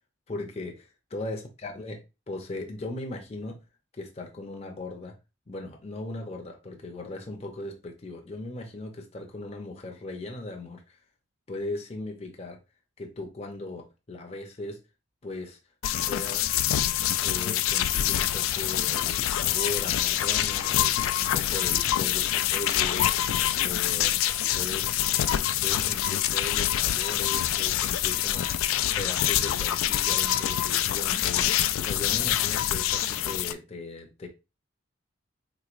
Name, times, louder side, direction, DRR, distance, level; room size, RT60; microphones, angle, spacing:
voice 1, 0.3-2.0 2.3-3.6 3.9-5.2 5.5-11.0 11.5-12.6 13.0-14.8 15.2-15.6 16.1-16.5 17.2-23.2 23.6-24.2 24.5-24.9 25.6-28.6 29.0-31.5 31.8-34.3, left 2 dB, 30° left, 0.6 m, -38 dB
sound 1, 15.8-33.5, left 12 dB, 90° left, 0.3 m, -26 dB
3.8 x 3.0 x 2.4 m
head